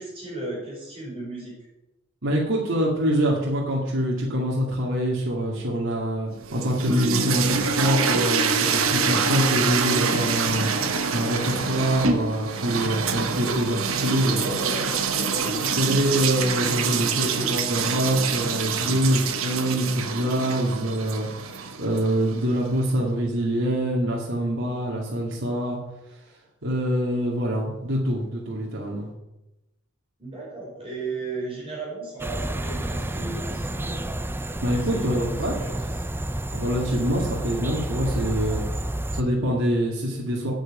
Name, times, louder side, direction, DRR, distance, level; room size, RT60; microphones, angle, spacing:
voice 1, 0.0-1.5 14.3-15.7 16.6-17.5 30.2-34.0 34.8-35.9 37.9-38.3, right 2 dB, 30° right, -5 dB, 5.3 m, -35 dB
voice 2, 2.2-14.4 15.4-25.8 26.1-26.2 26.6-29.1 34.6-35.5 36.5-38.6 39.1-40.5, equal, 65° right, -3 dB, 2.3 m, -25 dB
sound 1, 6.4-22.4, right 5 dB, 85° right, 1.2 m, -26 dB
sound 2, 32.2-39.2, right 1 dB, 10° right, 0.5 m, -30 dB
8.9 x 7.5 x 8.8 m, 0.95 s
head